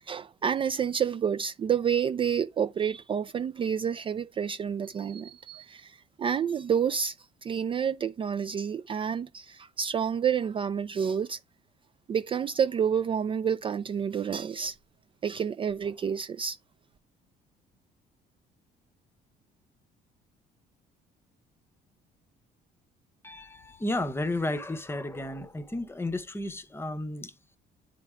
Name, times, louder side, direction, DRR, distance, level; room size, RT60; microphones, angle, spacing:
voice 1, 0.1-7.1 7.4-11.4 12.1-14.8 15.2-16.6, right 7 dB, 30° right, 0.3 m, -29 dB
voice 2, 23.2-27.3, left 2 dB, 15° left, 0.8 m, -33 dB
9.6 x 3.5 x 3.4 m
cardioid pair, 110°, 17 cm